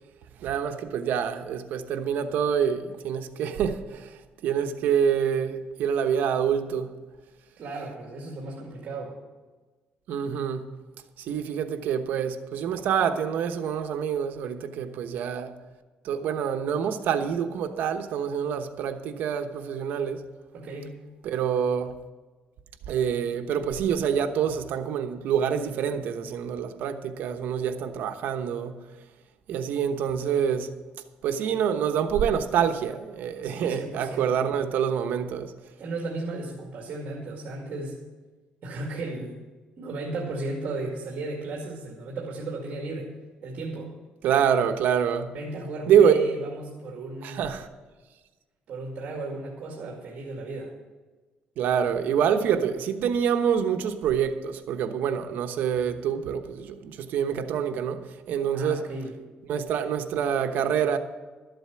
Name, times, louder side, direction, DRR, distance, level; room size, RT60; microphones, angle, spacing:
voice 1, 0.4-6.9 10.1-10.7 11.2-15.5 16.0-20.2 21.2-21.9 22.9-28.7 29.5-30.7 31.2-35.5 44.2-45.3 45.9-46.2 47.2-47.7 51.6-58.9 59.5-61.0, right 8 dB, 75° right, 1.0 m, -26 dB
voice 2, 7.6-9.2 20.5-20.9 33.4-34.5 35.8-38.0 38.6-39.4 39.8-43.1 43.4-43.9 45.3-47.4 48.7-50.7 58.5-59.1, right 2 dB, 50° right, 2.3 m, -35 dB
12.5 x 7.9 x 7.0 m
cardioid pair, 140°, 3 cm